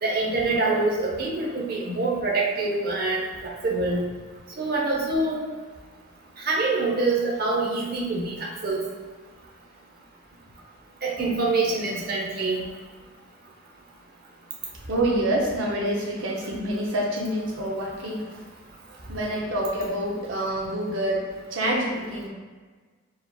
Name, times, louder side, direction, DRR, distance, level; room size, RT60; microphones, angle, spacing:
voice 1, 0.0-4.0 4.6-5.4 6.4-8.8 11.0-12.6, right 3 dB, 50° right, -2 dB, 0.8 m, -25 dB
voice 2, 14.9-18.3 19.1-22.3, right 1 dB, 90° right, -2 dB, 0.7 m, -27 dB
4.7 x 4.0 x 2.3 m, 1.4 s
head